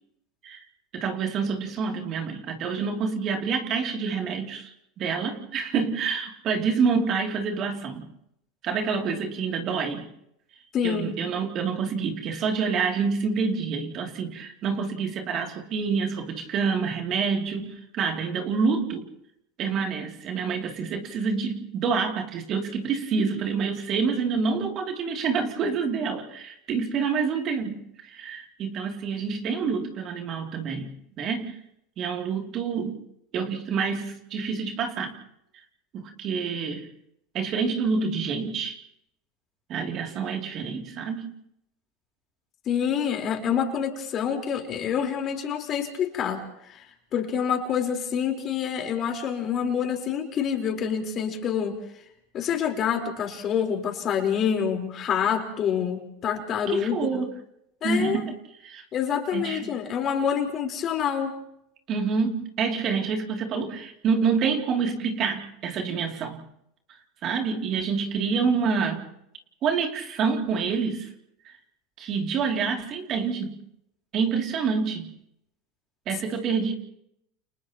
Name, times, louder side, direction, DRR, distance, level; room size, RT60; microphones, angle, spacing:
voice 1, 0.9-4.7 5.0-8.1 8.6-10.1 10.8-19.1 19.6-30.9 31.2-31.6 32.0-33.0 33.3-35.2 35.9-36.9 37.3-38.8 39.7-41.4 56.7-57.3 57.8-58.3 58.6-58.8 59.3-59.7 61.9-66.4 67.2-69.1 69.6-71.1 71.4-71.5 72.0-73.6 74.1-75.1 76.1-76.7, right 5 dB, 45° right, 3 dB, 2.8 m, -27 dB
voice 2, 10.7-11.2 42.7-46.9 47.1-51.8 52.3-57.2 57.8-58.2 58.9-61.3, left 8 dB, 40° left, 3 dB, 4.1 m, -27 dB
30.0 x 29.5 x 3.0 m, 0.77 s
hypercardioid pair, 100°, 0 cm